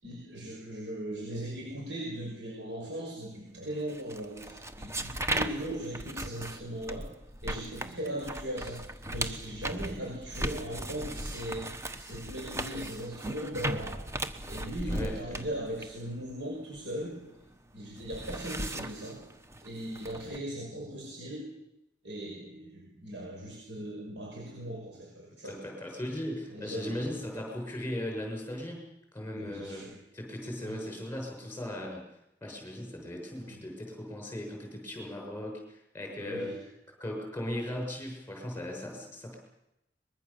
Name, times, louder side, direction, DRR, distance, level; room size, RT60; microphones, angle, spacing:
voice 1, 0.0-7.1 7.4-14.0 14.5-17.2 17.7-19.2 19.6-21.5 22.0-25.6 26.5-27.0 29.3-30.0 30.6-30.8 33.5-33.6 36.2-36.6, right 1 dB, 85° right, -1 dB, 6.0 m, -38 dB
sound 1, 3.9-17.4 17.7-20.4, right 1 dB, 15° right, 1.2 m, -37 dB
voice 2, 14.8-15.5 25.4-28.8 29.1-29.8 30.1-32.0 32.4-36.6 37.0-39.4, left 1 dB, 15° left, 1 dB, 6.4 m, -38 dB
24.0 x 21.5 x 7.1 m, 0.85 s
head